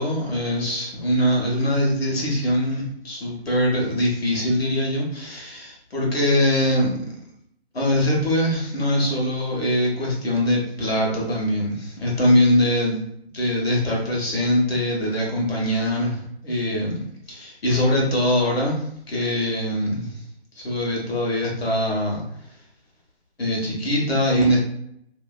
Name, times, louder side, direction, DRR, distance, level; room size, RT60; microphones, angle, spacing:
voice 1, 0.0-6.9 7.7-12.9 13.3-17.0 17.3-20.1 20.5-22.2 23.4-24.6, left 1 dB, 70° left, -3 dB, 1.2 m, -22 dB
2.8 x 2.5 x 2.3 m, 0.73 s
figure-of-eight pair, 145°, 32 cm